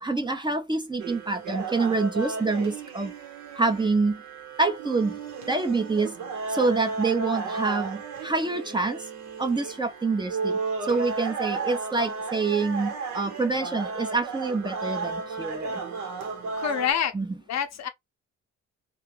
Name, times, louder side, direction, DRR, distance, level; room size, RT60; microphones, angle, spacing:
voice 1, 0.0-3.1 3.6-4.2 4.6-5.2 5.5-6.1 6.5-9.0 9.4-10.6 10.9-15.8 17.1-17.3, right 3 dB, 15° right, 0.7 m, -26 dB
sound 1, 1.0-16.9, right 4 dB, 65° right, 1.1 m, -34 dB
voice 2, 16.6-17.1 17.5-17.9, left 8 dB, 60° left, 0.6 m, -26 dB
2.8 x 2.4 x 3.1 m
cardioid pair, 75°, 31 cm